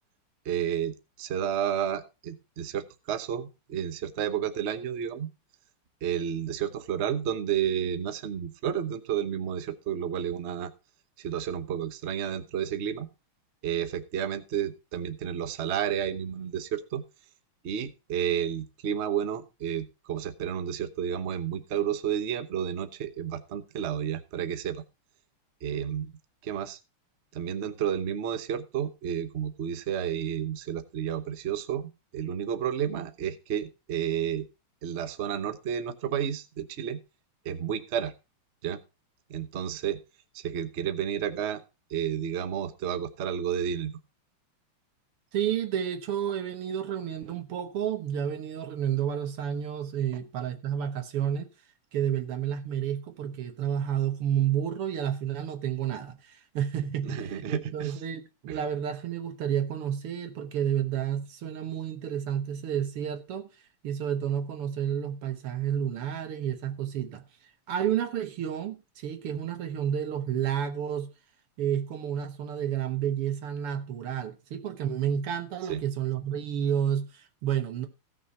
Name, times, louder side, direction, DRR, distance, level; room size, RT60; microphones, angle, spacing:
voice 1, 0.4-5.3 6.0-10.7 11.2-13.1 13.6-17.0 17.6-24.8 25.6-26.1 26.4-26.8 27.3-34.5 34.8-37.0 37.4-38.1 38.6-38.8 39.3-40.0 40.3-41.6 41.9-43.9 57.0-57.9 58.5-58.6 75.7-75.8, right 9 dB, 50° right, 0.9 m, -31 dB
voice 2, 45.3-51.5 51.9-63.5 63.8-67.2 67.7-71.1 71.6-77.9, right 9 dB, 90° right, 2.3 m, -30 dB
16.0 x 6.3 x 4.1 m
omnidirectional pair, 2.4 m